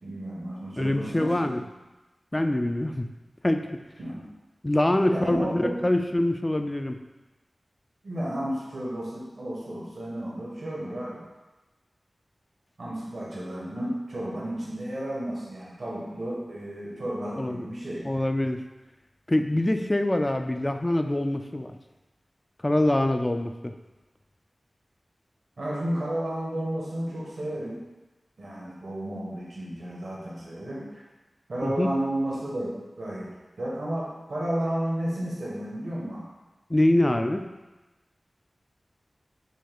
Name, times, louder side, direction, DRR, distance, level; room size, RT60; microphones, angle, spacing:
voice 1, 0.0-1.5 4.0-4.2 5.0-5.8 8.0-11.2 12.8-18.0 25.6-27.8 28.4-31.1 31.5-33.3 33.6-36.3, right 1 dB, 80° right, -5 dB, 1.2 m, -32 dB
voice 2, 0.8-1.6 2.3-3.1 3.4-3.8 4.6-7.0 17.4-17.7 18.0-18.6 19.3-21.8 22.6-23.7 31.6-32.0 36.7-37.5, left 1 dB, 25° left, 6 dB, 0.3 m, -24 dB
6.3 x 2.3 x 3.5 m, 1.1 s
cardioid pair, 50°, 0 cm